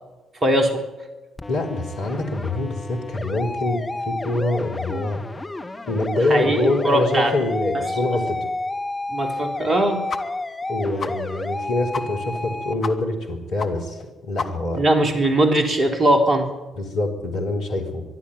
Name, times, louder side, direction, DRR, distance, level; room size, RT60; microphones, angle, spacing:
voice 1, 0.4-0.8 6.3-7.3 9.1-10.1 14.7-16.5, right 1 dB, 35° right, 4 dB, 3.6 m, -20 dB
sound 1, 1.4-12.7, left 2 dB, 20° left, 1.8 m, -31 dB
voice 2, 1.5-5.2 5.9-8.4 10.7-14.8 16.8-18.0, left 2 dB, 65° left, 0 dB, 3.5 m, -25 dB
sound 2, 10.1-10.2 10.5-10.6 11.0-11.1 11.5-11.6 11.9-12.0 12.3-12.5 12.8-12.9 13.2-13.3 13.6-13.7 14.0-14.1 14.4-14.8, left 4 dB, 45° left, 1.6 m, -30 dB
23.5 x 12.0 x 9.5 m, 1.1 s
figure-of-eight pair, 40°, 0 cm